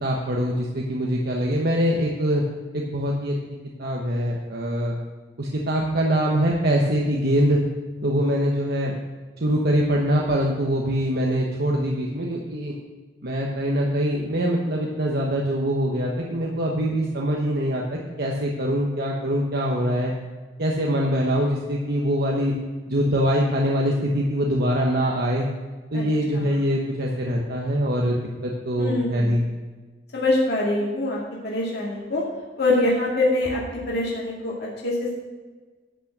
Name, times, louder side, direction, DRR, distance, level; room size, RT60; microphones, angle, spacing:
voice 1, 0.0-2.4 2.7-3.4 3.8-5.0 5.4-7.6 8.0-8.9 9.4-12.7 13.2-20.1 20.6-22.5 22.9-25.5 25.9-29.4, equal, 60° right, -2 dB, 1.1 m, -23 dB
voice 2, 28.8-29.3 30.1-32.2 32.6-35.2, left 2 dB, 65° left, -4 dB, 2.2 m, -24 dB
11.0 x 6.0 x 6.7 m, 1.4 s
head